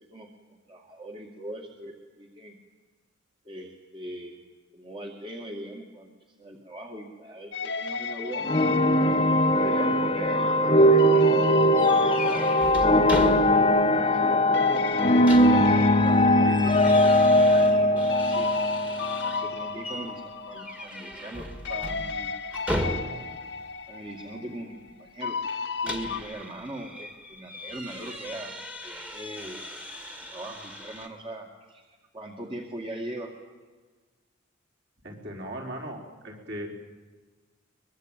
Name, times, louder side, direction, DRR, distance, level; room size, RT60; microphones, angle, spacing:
voice 1, 0.7-2.6 3.5-4.4 4.7-6.1 6.4-8.7 9.3-11.2 12.0-13.3 14.0-16.7 17.3-18.5 19.2-22.3 23.1-23.2 23.9-25.4 25.8-28.5 28.8-29.6 30.2-33.3, right 1 dB, 25° right, 2 dB, 2.1 m, -40 dB
sound 1, 7.5-14.3 14.5-21.4 21.6-26.2, left 5 dB, 60° left, 1.6 m, -35 dB
sound 2, 8.4-19.7, left 1 dB, 25° left, 1.1 m, -20 dB
sound 3, 11.7-13.9 14.2-14.3 14.9-19.5 19.8-20.1 20.5-23.4 25.5-31.1, equal, 5° right, 1.9 m, -37 dB
voice 2, 35.0-36.7, equal, 50° right, 1 dB, 4.6 m, -38 dB
23.5 x 21.5 x 9.1 m, 1.3 s
head